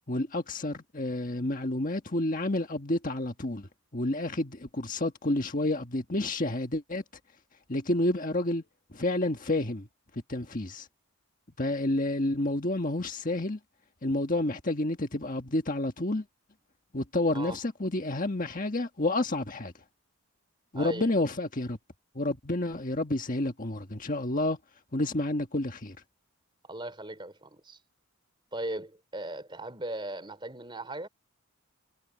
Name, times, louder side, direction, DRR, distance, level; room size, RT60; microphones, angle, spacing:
voice 1, 0.1-7.0 7.7-8.6 8.9-9.9 10.1-10.9 11.6-13.6 14.0-16.2 16.9-19.7 20.7-21.8 22.1-24.6 24.9-26.0, left 1 dB, 35° left, 1.5 m, -29 dB
voice 2, 20.7-21.1 26.6-27.8 28.5-31.1, right 1 dB, 20° right, 4.1 m, -38 dB
head